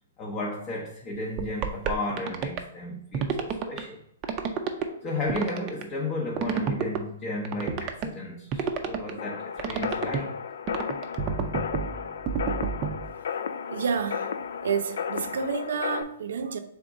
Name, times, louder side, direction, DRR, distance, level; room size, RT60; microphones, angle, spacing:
voice 1, 0.2-4.0 4.6-10.4, left 2 dB, 25° left, 0.7 m, -34 dB
sound 1, 1.4-2.6 3.1-3.8 4.2-4.8 5.3-5.8 6.4-7.0 7.4-8.1 8.5-9.1 9.6-10.2 10.7-13.1, right 7 dB, 25° right, 0.5 m, -29 dB
sound 2, 9.2-16.0, left 7 dB, 70° left, 0.3 m, -34 dB
voice 2, 13.7-14.3 14.6-16.6, right 6 dB, 75° right, 0.6 m, -29 dB
3.6 x 3.5 x 4.0 m
hypercardioid pair, 155°, 0 cm